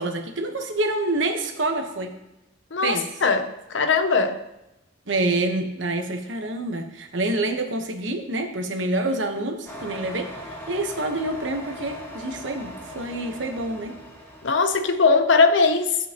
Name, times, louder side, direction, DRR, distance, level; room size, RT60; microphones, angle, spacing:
voice 1, 0.0-2.1 2.8-3.1 5.1-10.3 10.7-14.0, right 2 dB, 80° right, 4 dB, 1.1 m, -27 dB
voice 2, 2.7-4.4 14.4-16.0, left 4 dB, 75° left, 9 dB, 0.7 m, -20 dB
sound 1, 9.6-15.0, left 1 dB, 15° left, 1.5 m, -39 dB
15.5 x 5.5 x 3.0 m, 0.94 s
head